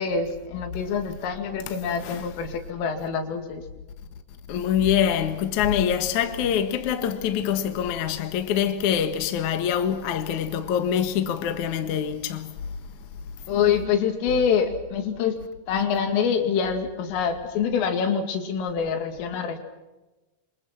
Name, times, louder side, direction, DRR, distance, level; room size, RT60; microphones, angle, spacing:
voice 1, 0.0-3.6 13.5-15.4 15.7-19.6, left 6 dB, 80° left, 5.0 m, -25 dB
voice 2, 1.7-2.3 4.5-12.5, left 9 dB, 60° left, 2.0 m, -25 dB
28.0 x 25.5 x 6.0 m
omnidirectional pair, 5.8 m